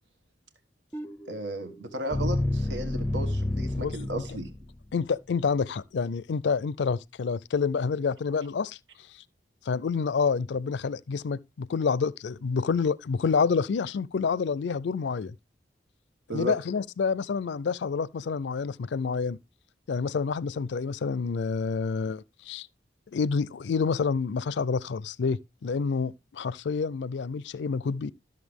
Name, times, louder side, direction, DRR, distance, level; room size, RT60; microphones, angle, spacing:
sound 1, 0.9-5.0, left 1 dB, 10° left, 0.6 m, -30 dB
voice 1, 1.3-4.5 16.3-16.5, right 1 dB, 80° right, 1.4 m, -34 dB
voice 2, 4.9-8.8 9.7-15.3 16.3-19.4 19.9-22.7 23.1-28.1, left 5 dB, 80° left, 0.4 m, -28 dB
13.0 x 6.6 x 3.4 m
head